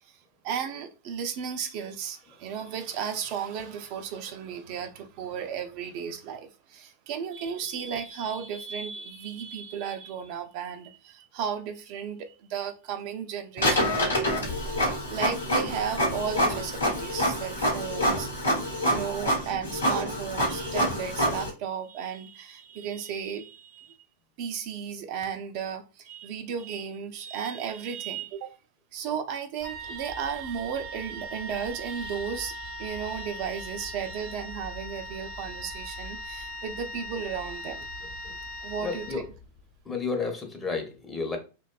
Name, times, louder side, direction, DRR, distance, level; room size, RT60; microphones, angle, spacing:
voice 1, 0.4-14.5 15.1-18.3 18.9-23.9 24.4-28.6 28.9-37.9 38.6-39.1, right 7 dB, 55° right, 0.3 m, -34 dB
Printer, 13.6-21.5, equal, 85° left, 0.9 m, -27 dB
Wind instrument woodwind instrument, 29.6-39.7, equal, 50° left, 0.7 m, -39 dB
voice 2, 38.8-39.2 39.9-41.4, left 4 dB, 15° left, 0.7 m, -31 dB
2.5 x 2.2 x 2.2 m
hypercardioid pair, 95°, 0 cm